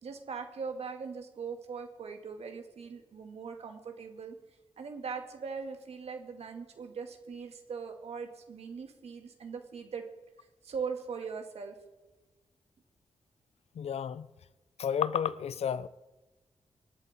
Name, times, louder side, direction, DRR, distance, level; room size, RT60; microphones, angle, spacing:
voice 1, 0.0-4.4 4.8-10.1 10.6-11.8, right 5 dB, 75° right, 1.9 m, -40 dB
voice 2, 13.8-14.3 14.8-15.9, left 8 dB, 75° left, 0.6 m, -31 dB
25.5 x 8.6 x 4.2 m
cardioid pair, 75°, 11 cm